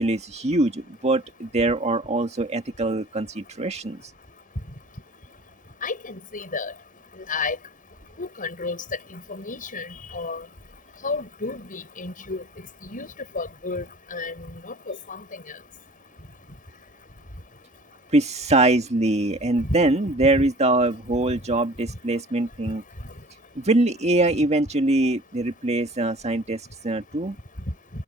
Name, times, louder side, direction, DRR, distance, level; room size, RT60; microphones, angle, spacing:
voice 1, 0.0-4.0 18.1-22.8 23.6-27.4, right 2 dB, 30° right, 1.8 m, -23 dB
voice 2, 5.8-6.7 7.3-7.6 8.2-8.8 9.1-10.4 11.0-12.4 12.8-15.2 19.6-19.8 20.3-20.4, left 3 dB, 40° left, 6.3 m, -32 dB
head